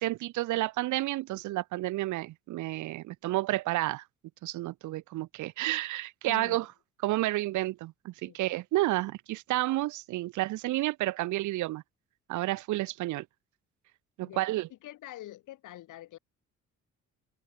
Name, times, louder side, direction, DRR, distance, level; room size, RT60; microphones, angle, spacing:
voice 1, 0.0-4.0 4.4-6.7 7.0-11.8 12.3-13.3 14.2-14.7, right 17 dB, 75° right, 0.6 m, -30 dB
voice 2, 6.2-6.7 8.2-8.4 14.2-14.4 14.7-16.2, left 14 dB, 85° left, 8.0 m, -45 dB
cardioid pair, 90°, 30 cm